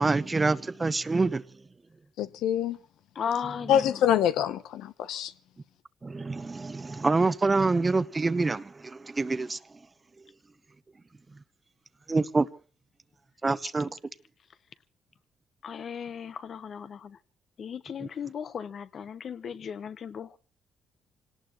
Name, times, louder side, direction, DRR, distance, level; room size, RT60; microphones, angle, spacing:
voice 1, 0.0-1.4 6.0-9.6 12.1-12.5 13.4-13.9, right 3 dB, 25° right, 0.9 m, -26 dB
voice 2, 2.2-2.8 3.7-5.3, left 10 dB, 85° left, 0.8 m, -25 dB
voice 3, 3.1-4.1 6.9-7.0 13.6-13.7 15.6-17.2 17.6-20.4, left 7 dB, 55° left, 1.0 m, -36 dB
26.0 x 18.5 x 3.0 m
cardioid pair, 90°, 0 cm